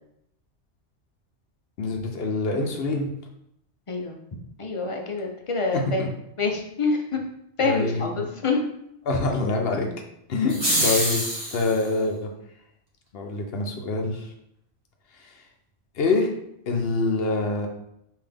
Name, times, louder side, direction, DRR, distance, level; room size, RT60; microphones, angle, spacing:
voice 1, 1.8-3.1 6.0-6.1 7.6-8.3 9.1-9.9 10.3-12.3 13.1-14.3 15.2-15.3 16.0-16.3 16.7-17.7, left 3 dB, 60° left, 2 dB, 0.9 m, -25 dB
voice 2, 4.6-6.0 6.4-7.2 7.6-8.6 10.8-11.0, left 3 dB, 40° left, 2 dB, 0.5 m, -26 dB
sound 1, 10.5-11.8, right 1 dB, 25° right, 1.1 m, -25 dB
5.6 x 2.7 x 3.4 m, 0.77 s
omnidirectional pair, 1.2 m